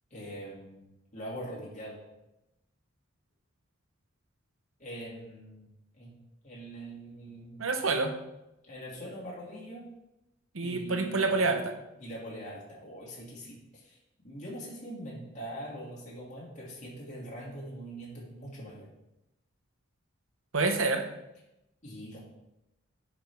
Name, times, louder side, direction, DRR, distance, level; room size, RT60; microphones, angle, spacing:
voice 1, 0.1-0.9 1.1-2.0 4.8-5.7 6.0-6.1 6.4-7.7 8.6-9.9 10.6-11.3 12.0-14.0 14.2-18.9 21.8-22.2, right 1 dB, 35° left, -6 dB, 2.5 m, -42 dB
voice 2, 7.6-8.1 10.5-11.8 20.5-21.0, right 3 dB, 85° right, 5 dB, 1.0 m, -27 dB
10.0 x 5.2 x 3.6 m, 0.91 s
head